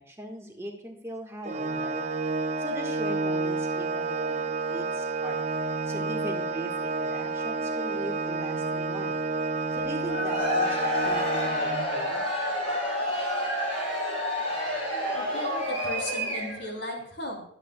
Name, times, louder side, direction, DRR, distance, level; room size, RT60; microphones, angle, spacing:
voice 1, 0.0-2.1 2.6-9.2 9.7-12.2, equal, 15° right, 1 dB, 1.4 m, -40 dB
Organ, 1.4-12.2, right 3 dB, 35° right, 0.5 m, -30 dB
Cheering / Crowd, 10.0-16.8, left 1 dB, 35° left, 5.1 m, -29 dB
voice 2, 15.1-17.4, left 1 dB, 60° left, 0 dB, 3.3 m, -37 dB
20.5 x 8.2 x 2.3 m, 0.71 s
head